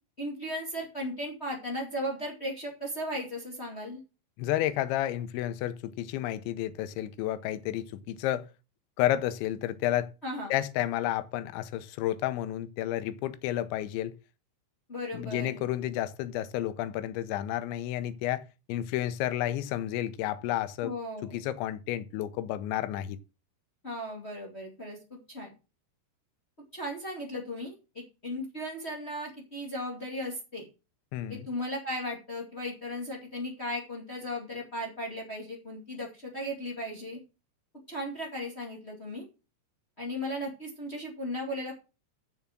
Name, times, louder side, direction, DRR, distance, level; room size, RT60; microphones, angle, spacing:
voice 1, 0.2-4.0 10.2-10.6 14.9-15.6 20.8-21.4 23.8-25.5 26.7-30.7 31.3-37.2 37.9-39.2 40.0-41.8, equal, 25° left, 1.3 m, -36 dB
voice 2, 4.4-8.4 9.0-10.1 10.5-14.1 15.1-18.4 18.7-20.9 21.2-23.2 31.1-31.5, left 13 dB, 90° left, 3.1 m, -31 dB
7.2 x 7.0 x 7.6 m
omnidirectional pair, 5.1 m